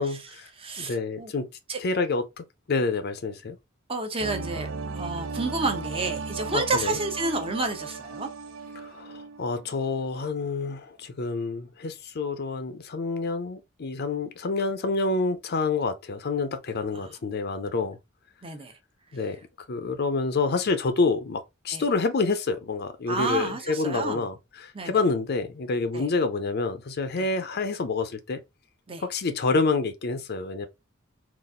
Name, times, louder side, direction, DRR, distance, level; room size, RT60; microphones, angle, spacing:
voice 1, 0.0-0.5 0.8-1.5 1.8-3.6 6.5-7.0 8.8-18.0 19.1-19.4 19.7-24.3 24.6-28.4 29.0-30.7, left 3 dB, 50° left, 0.5 m, -28 dB
voice 2, 0.6-1.3 1.7-1.8 3.9-8.3 16.9-17.1 18.4-18.7 21.7-21.8 23.1-24.2 24.7-24.9 25.9-26.0 27.2-27.3 28.9-29.0, right 3 dB, 30° right, 0.8 m, -30 dB
sound 1, 4.2-9.8 10.1-10.2, right 4 dB, 75° right, 0.6 m, -36 dB
4.0 x 2.4 x 3.6 m
head